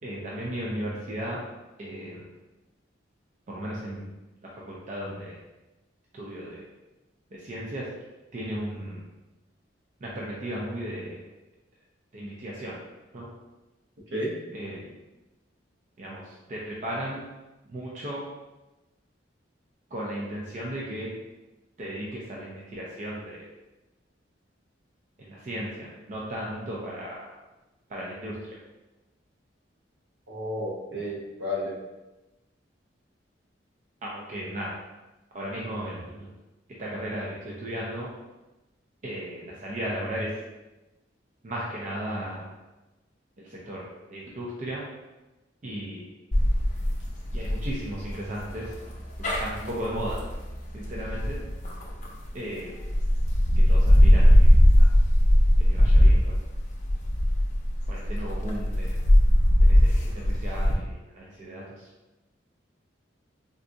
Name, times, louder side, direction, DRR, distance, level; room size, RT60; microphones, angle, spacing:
voice 1, 0.0-1.5 1.8-2.3 3.5-4.1 4.4-5.4 6.1-6.7 7.3-7.9 8.3-9.1 10.0-11.2 12.1-12.8 13.1-13.3 14.5-14.9 16.0-17.2 17.7-18.3 19.9-21.1 21.8-23.5 25.3-27.3 27.9-28.6 30.9-31.0 34.0-34.8 35.3-36.3 36.8-38.1 39.0-40.4 41.4-42.5 43.4-44.8 45.6-46.1 47.3-48.7 49.2-50.2 50.7-51.4 52.3-52.8 53.6-54.8 55.6-56.3 57.9-59.0 59.6-61.9, equal, 40° right, -4 dB, 0.5 m, -35 dB
voice 2, 30.3-31.7, left 1 dB, 75° right, -4 dB, 0.9 m, -31 dB
sound 1, 46.3-52.3 52.8-60.7, equal, 40° left, 0.5 m, -20 dB
3.8 x 2.3 x 2.6 m, 1.0 s
head